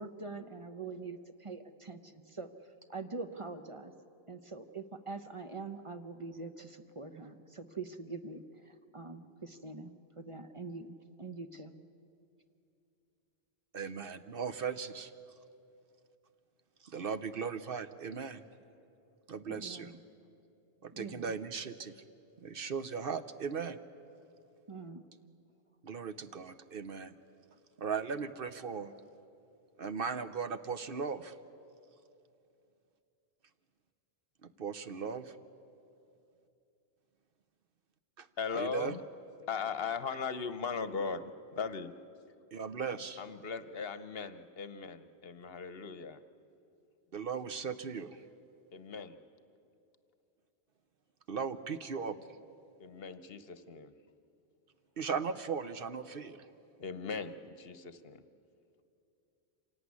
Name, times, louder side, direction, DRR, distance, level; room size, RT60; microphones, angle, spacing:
voice 1, 0.0-2.5 2.9-3.9 4.3-11.7 19.5-20.0 20.9-21.3 24.7-25.1, right 3 dB, 30° right, 7 dB, 0.9 m, -44 dB
voice 2, 13.7-15.1 16.8-18.4 19.3-19.9 20.8-22.0 22.4-23.8 25.8-27.1 27.8-28.9 29.8-31.3 34.4-35.4 38.2-38.3 38.5-38.9 42.5-43.2 47.1-48.2 51.3-52.2 55.0-56.5, right 6 dB, 60° right, 11 dB, 0.9 m, -37 dB
voice 3, 38.4-39.0 39.5-41.9 43.2-46.2 48.7-49.2 52.8-53.9 56.8-58.2, left 5 dB, 65° left, 12 dB, 1.1 m, -38 dB
26.5 x 17.5 x 9.6 m, 2.7 s
omnidirectional pair, 1.1 m